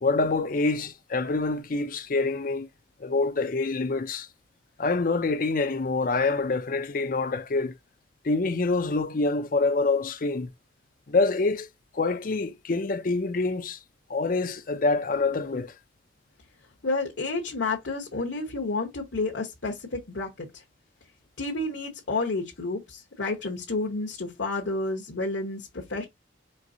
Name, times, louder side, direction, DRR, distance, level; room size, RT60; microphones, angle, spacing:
voice 1, 0.0-2.7 3.0-4.3 4.8-7.7 8.2-10.5 11.1-11.7 11.9-13.8 14.1-15.7, left 3 dB, 45° left, 0.5 m, -26 dB
voice 2, 16.8-20.6 21.4-26.0, left 3 dB, 75° left, 1.0 m, -30 dB
4.5 x 3.5 x 2.6 m
head